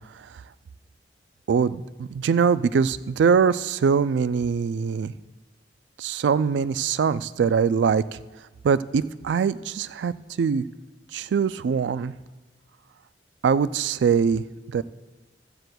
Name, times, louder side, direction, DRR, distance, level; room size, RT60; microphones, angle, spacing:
voice 1, 1.5-5.1 6.0-8.2 8.6-10.6 11.1-12.1 13.4-14.8, right 6 dB, 80° right, 16 dB, 0.3 m, -23 dB
15.5 x 13.5 x 2.3 m, 1.2 s
head